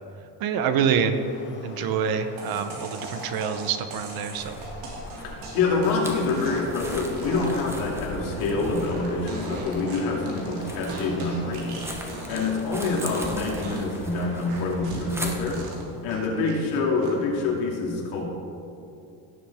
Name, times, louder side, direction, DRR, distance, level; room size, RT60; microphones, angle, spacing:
voice 1, 0.4-1.2 1.6-4.5, right 7 dB, 55° right, 9 dB, 0.9 m, -26 dB
sound 1, 1.1-14.9, left 2 dB, 25° left, 1.6 m, -43 dB
sound 2, 2.4-12.6 12.8-13.3 13.6-16.6 17.0-17.5, right 2 dB, 90° right, 2.7 m, -39 dB
sound 3, 4.3-15.7, equal, 5° right, 0.9 m, -39 dB
voice 2, 5.5-11.8 12.3-15.6 16.0-18.2, left 3 dB, 90° left, -2 dB, 2.7 m, -26 dB
17.0 x 7.2 x 3.5 m, 2.7 s
cardioid pair, 155°, 43 cm